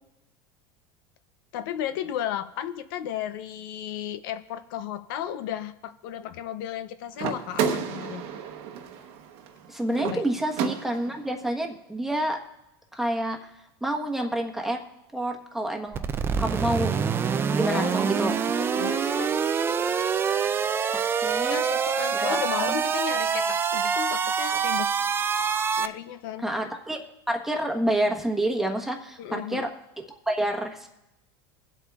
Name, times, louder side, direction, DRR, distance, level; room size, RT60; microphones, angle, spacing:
voice 1, 1.5-8.2 10.0-10.2 17.6-18.0 18.5-19.3 21.3-24.9 25.8-26.5 29.2-29.7, left 10 dB, 75° left, 11 dB, 0.6 m, -34 dB
sound 1, 7.1-11.3, right 7 dB, 60° right, 1.0 m, -32 dB
voice 2, 9.7-12.4 12.9-13.5 13.8-14.8 15.1-16.0 16.4-16.9 17.5-18.3 21.2-21.6 22.1-22.7 26.4-29.7 30.1-30.9, right 1 dB, 5° right, 1 dB, 1.2 m, -28 dB
sound 2, 15.9-25.9, right 6 dB, 20° right, 0.4 m, -25 dB
24.0 x 8.1 x 2.4 m, 0.93 s
supercardioid pair, 135°, 11 cm